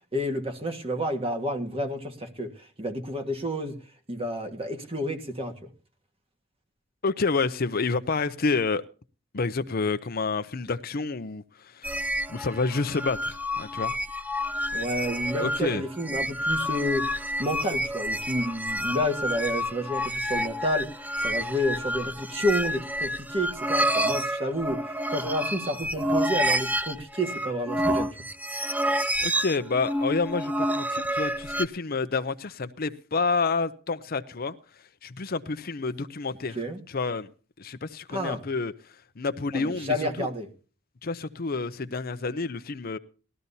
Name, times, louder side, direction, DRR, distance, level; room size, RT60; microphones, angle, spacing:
voice 1, 0.1-2.5 2.8-3.7 4.1-5.7 14.7-17.0 17.4-20.9 21.2-28.1 36.5-36.8 38.1-38.4 39.5-40.5, equal, 30° right, 1.6 m, -30 dB
voice 2, 7.0-8.8 9.3-13.9 15.4-15.8 29.2-34.5 35.0-36.6 36.9-37.3 37.6-38.7 39.2-40.3 41.0-43.0, left 4 dB, 50° left, 0.6 m, -29 dB
sound 1, 11.8-31.7, equal, 10° right, 0.6 m, -29 dB
19.0 x 13.5 x 2.7 m
head